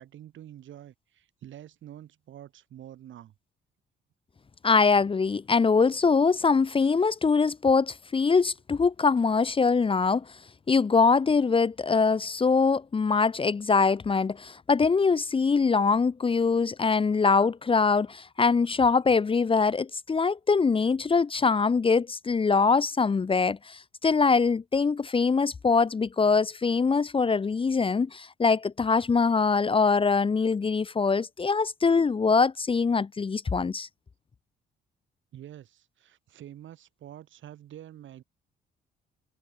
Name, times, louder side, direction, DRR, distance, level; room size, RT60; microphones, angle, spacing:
voice 1, 0.0-3.3 35.3-38.2, right 11 dB, 75° right, 7.2 m, -47 dB
voice 2, 4.6-10.2 10.7-33.9, left 4 dB, 25° left, 0.8 m, -23 dB
cardioid pair, 90°, 20 cm